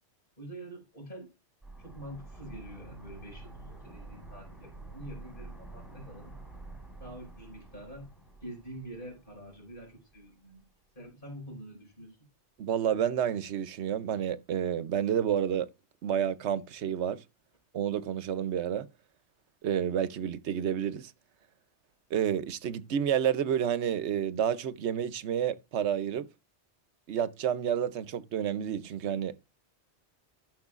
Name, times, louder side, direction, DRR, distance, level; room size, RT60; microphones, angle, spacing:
voice 1, 0.4-1.3 1.8-6.4 7.0-8.1 8.4-10.6 10.9-12.3, right 1 dB, 50° left, 4.7 m, -46 dB
sound 1, 1.6-10.3 10.6-10.7, right 2 dB, ahead, 3.5 m, -48 dB
voice 2, 12.6-15.7 16.0-17.2 17.7-18.9 19.6-21.1 22.1-26.3 27.1-29.4, right 9 dB, 75° right, 1.0 m, -30 dB
16.0 x 6.1 x 2.4 m
omnidirectional pair, 1.2 m